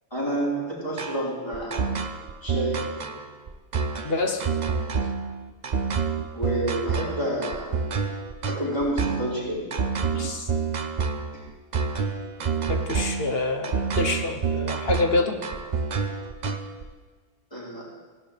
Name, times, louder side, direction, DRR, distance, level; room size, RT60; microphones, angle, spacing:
voice 1, 0.1-1.9 2.4-2.9 6.3-7.8 8.5-9.7 17.5-17.9, right 1 dB, 20° left, -7 dB, 4.5 m, -29 dB
sound 1, 1.0-16.8, right 5 dB, 40° right, 0.7 m, -28 dB
voice 2, 4.0-4.5 10.1-10.5 12.7-15.4, left 3 dB, 50° left, 4 dB, 1.3 m, -26 dB
18.5 x 11.5 x 3.4 m, 1.5 s
omnidirectional pair, 1.3 m